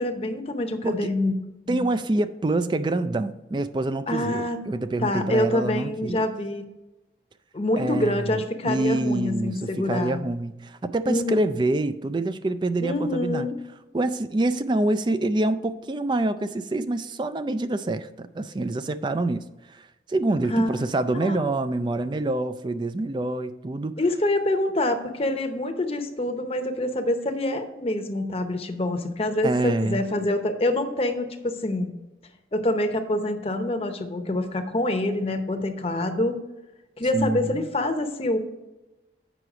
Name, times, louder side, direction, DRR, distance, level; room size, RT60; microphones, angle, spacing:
voice 1, 0.0-1.4 1.7-1.9 4.1-4.6 5.0-6.6 7.5-10.2 11.1-11.6 12.8-13.5 20.5-20.7 21.2-21.5 24.0-31.9 32.5-36.4 37.0-38.4, left 1 dB, 35° left, 7 dB, 0.8 m, -26 dB
voice 2, 1.7-6.3 7.8-13.5 13.9-23.9 29.4-30.1 37.1-37.7, right 2 dB, 25° right, 12 dB, 0.3 m, -26 dB
7.9 x 5.7 x 4.9 m, 1.0 s
head